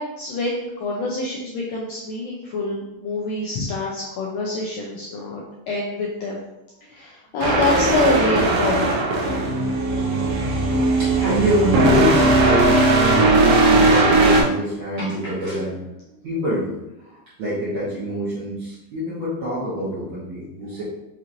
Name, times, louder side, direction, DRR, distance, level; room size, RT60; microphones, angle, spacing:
voice 1, 0.0-6.4 6.9-9.0, left 2 dB, 85° left, -3 dB, 1.5 m, -26 dB
sound 1, 7.4-14.4, right 2 dB, 75° right, 1.5 m, -18 dB
voice 2, 10.0-16.8 17.0-20.8, equal, 60° right, -10 dB, 1.3 m, -26 dB
5.5 x 2.9 x 2.5 m, 0.92 s
omnidirectional pair, 3.6 m